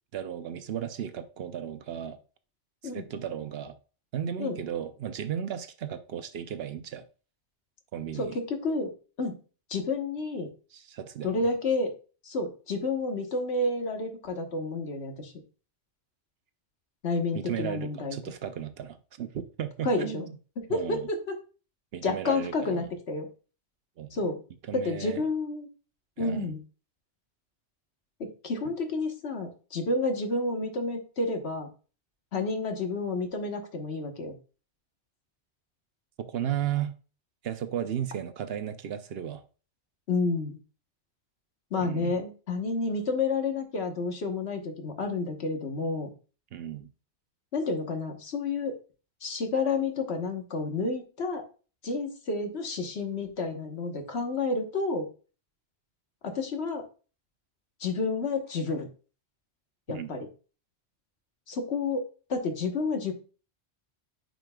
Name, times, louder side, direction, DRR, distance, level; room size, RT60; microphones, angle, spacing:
voice 1, 0.1-2.2 2.9-3.8 4.1-7.0 7.9-8.4 10.7-11.5 17.3-20.4 20.7-21.1 21.9-22.9 24.0-24.1 24.7-25.2 26.2-26.5 28.7-28.8 36.2-36.9 37.4-39.4 41.8-42.2 46.5-46.9 59.9-60.1, right 9 dB, 65° right, 10 dB, 0.8 m, -35 dB
voice 2, 8.1-8.9 9.2-9.4 9.7-10.5 11.2-11.9 12.2-15.3 17.0-18.2 19.8-20.3 20.6-21.4 22.0-23.3 24.1-24.4 24.7-25.7 26.2-26.6 28.2-31.7 32.3-34.3 40.1-40.6 41.7-46.1 47.5-48.8 49.2-51.4 51.8-55.1 56.2-56.8 57.8-58.9 59.9-60.3 61.5-63.1, left 3 dB, 70° left, 4 dB, 1.4 m, -30 dB
9.1 x 5.1 x 2.3 m, 0.35 s
omnidirectional pair, 1.1 m